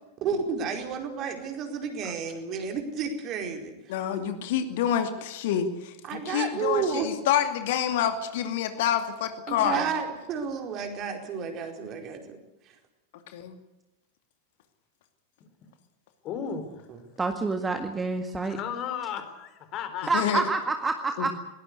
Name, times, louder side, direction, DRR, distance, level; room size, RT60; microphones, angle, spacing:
voice 1, 0.2-3.7 6.1-7.1 9.5-12.4 16.9-17.0, right 6 dB, 35° right, 4 dB, 4.6 m, -31 dB
voice 2, 3.9-9.8 13.3-13.6 20.1-20.4 21.2-21.4, left 9 dB, 55° left, 7 dB, 2.5 m, -27 dB
voice 3, 16.2-16.9 18.5-20.1 21.0-21.4, left 7 dB, 35° left, 8 dB, 4.2 m, -35 dB
voice 4, 17.2-18.6 20.1-21.3, right 3 dB, 15° right, 6 dB, 1.8 m, -27 dB
21.5 x 19.0 x 8.2 m, 0.97 s
figure-of-eight pair, 90°, 0 cm